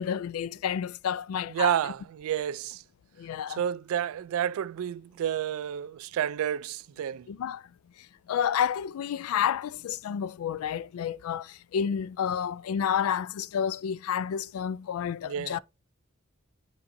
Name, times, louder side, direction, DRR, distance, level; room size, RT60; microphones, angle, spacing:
voice 1, 0.0-1.8 3.2-3.6 7.3-7.6 8.3-15.6, left 8 dB, 85° left, 0.3 m, -30 dB
voice 2, 1.5-2.8 3.5-7.3 15.2-15.6, right 9 dB, 75° right, 0.3 m, -30 dB
9.5 x 4.1 x 2.6 m
head